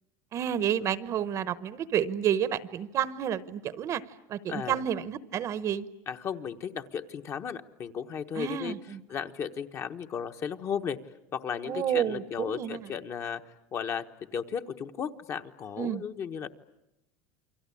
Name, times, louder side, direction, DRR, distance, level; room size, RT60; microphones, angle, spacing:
voice 1, 0.3-4.0 4.3-5.9 8.4-9.0 11.7-12.9 15.8-16.0, right 9 dB, 35° right, 16 dB, 1.0 m, -30 dB
voice 2, 4.5-4.8 6.1-8.7 9.1-11.0 11.3-13.4 13.7-14.0 14.3-16.5, left 7 dB, 30° left, 7 dB, 1.2 m, -35 dB
29.0 x 24.0 x 8.5 m, 0.88 s
supercardioid pair, 150°, 9 cm